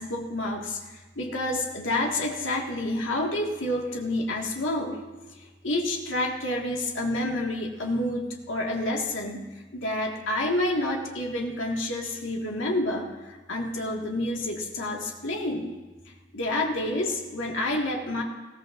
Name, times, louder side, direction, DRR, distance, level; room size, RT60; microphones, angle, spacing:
voice 1, 0.0-5.0 5.3-15.8 16.1-18.2, left 1 dB, 80° left, 0 dB, 1.9 m, -29 dB
20.0 x 15.0 x 2.6 m, 1.2 s
head